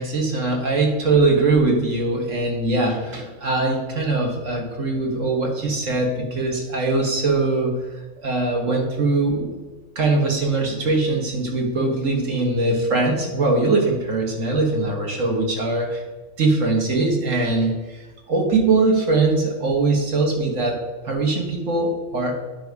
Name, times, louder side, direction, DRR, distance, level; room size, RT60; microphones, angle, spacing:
voice 1, 0.0-7.8 8.2-9.6 10.0-16.0 16.4-20.8 21.0-22.4, right 3 dB, 70° right, 0 dB, 1.9 m, -21 dB
10.0 x 5.3 x 4.7 m, 1.2 s
omnidirectional pair, 1.4 m